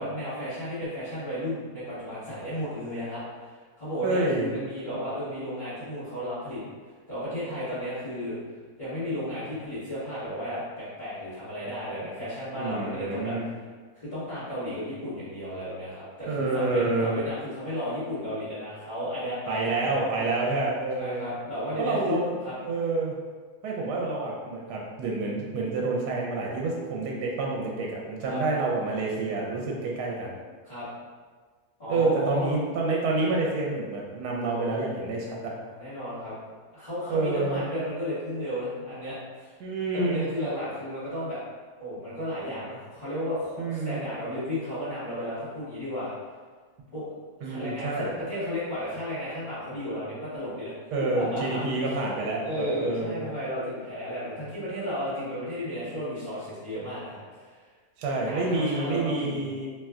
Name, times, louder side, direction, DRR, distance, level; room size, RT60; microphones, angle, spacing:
voice 1, 0.0-6.6 7.1-8.4 8.8-13.3 13.9-20.1 21.0-22.5 28.3-28.4 30.6-30.9 31.8-32.6 35.6-36.4 36.7-39.5 39.9-41.4 41.8-46.1 46.9-47.1 47.4-50.7 51.1-51.6 52.4-57.6 58.2-59.4, equal, 30° left, -15 dB, 1.2 m, -33 dB
voice 2, 4.0-4.5 12.6-13.5 16.3-17.2 19.5-21.3 21.8-23.1 23.6-30.4 31.9-35.5 37.1-37.6 39.6-40.3 43.6-44.0 47.4-48.1 50.9-53.2 58.0-59.7, right 3 dB, 80° right, -2 dB, 1.1 m, -28 dB
2.8 x 2.2 x 3.5 m, 1.5 s
omnidirectional pair, 1.7 m